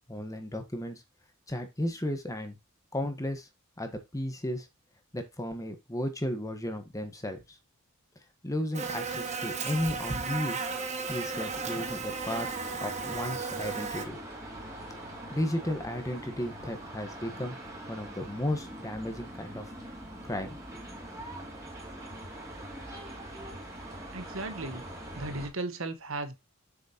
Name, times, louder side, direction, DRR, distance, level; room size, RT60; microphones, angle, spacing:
voice 1, 0.1-1.0 1.5-2.6 2.9-3.5 3.8-4.7 5.1-7.4 8.4-10.7 11.1-12.5 12.8-14.2 15.3-17.6 17.9-19.7 20.3-20.8, left 1 dB, 15° left, 1.4 m, -34 dB
Buzz, 8.7-14.1, right 4 dB, 35° right, 1.3 m, -34 dB
sound 1, 11.3-25.5, right 1 dB, 15° right, 3.0 m, -43 dB
voice 2, 24.1-24.8 25.1-26.3, right 2 dB, 65° right, 1.3 m, -35 dB
7.8 x 6.4 x 2.9 m
head